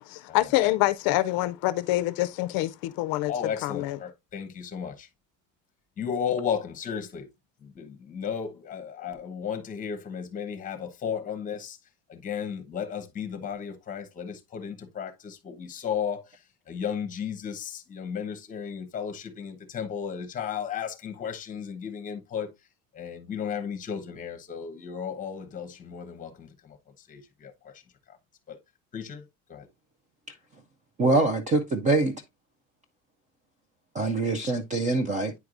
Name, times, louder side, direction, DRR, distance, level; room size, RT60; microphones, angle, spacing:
voice 1, 0.0-3.3 3.6-4.0, left 17 dB, 55° left, 0.5 m, -26 dB
voice 2, 3.3-5.1 6.0-7.3 7.6-11.8 12.1-16.2 16.7-22.5 22.9-26.8 27.1-27.7 28.1-28.2 28.5-28.6 28.9-29.7, left 7 dB, 20° left, 0.9 m, -34 dB
voice 3, 31.0-32.2 33.9-35.3, right 2 dB, 20° right, 0.3 m, -24 dB
9.3 x 4.6 x 2.4 m
cardioid pair, 180°, 41 cm